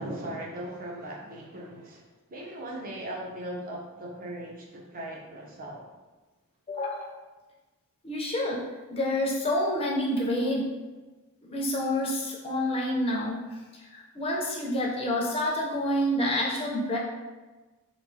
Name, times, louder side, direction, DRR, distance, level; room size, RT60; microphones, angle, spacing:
voice 1, 0.0-2.0 2.3-5.8, right 1 dB, 40° right, -3 dB, 0.5 m, -38 dB
voice 2, 6.7-7.2 8.0-8.6 8.9-10.7 11.4-17.0, left 1 dB, 25° left, -3 dB, 0.4 m, -28 dB
3.0 x 2.3 x 2.6 m, 1.2 s
head